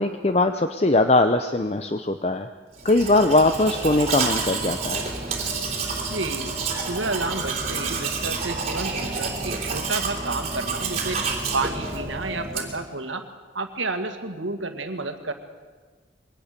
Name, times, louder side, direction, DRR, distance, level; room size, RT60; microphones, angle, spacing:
voice 1, 0.0-2.5 2.8-5.1, left 2 dB, 35° left, 8 dB, 0.7 m, -21 dB
Domestic sounds home sounds, 2.8-12.9, right 4 dB, 35° right, 3.3 m, -29 dB
voice 2, 6.1-6.5 6.8-11.2 11.5-13.2 13.5-15.3, right 3 dB, 90° right, 8 dB, 2.0 m, -30 dB
22.5 x 18.5 x 6.8 m, 1.4 s
head